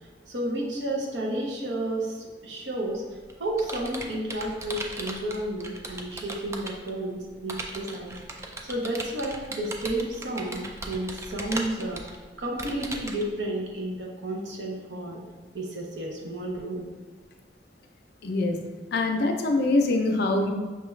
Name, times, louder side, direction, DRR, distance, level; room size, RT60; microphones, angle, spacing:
voice 1, 0.3-3.0 3.4-8.2 8.6-12.0 12.4-15.2 15.5-16.9, right 1 dB, 70° right, -1 dB, 0.8 m, -31 dB
Computer keyboard, 2.8-6.9 7.5-13.3, right 2 dB, 15° right, 0.3 m, -37 dB
voice 2, 18.2-18.6 18.9-20.5, left 2 dB, 60° left, 4 dB, 0.5 m, -24 dB
5.5 x 2.3 x 3.1 m, 1.4 s
head